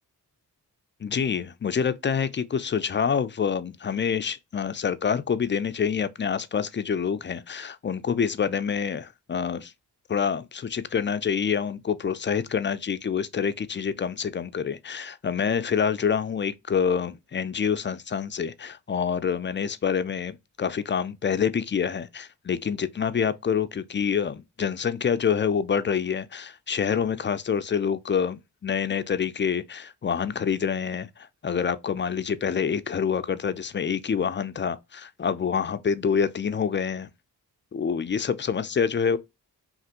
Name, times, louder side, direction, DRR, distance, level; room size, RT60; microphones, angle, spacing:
voice 1, 1.0-9.7 10.1-37.1 37.7-39.2, left 7 dB, 30° left, 0.4 m, -27 dB
3.3 x 2.5 x 2.8 m
cardioid pair, 40°, 41 cm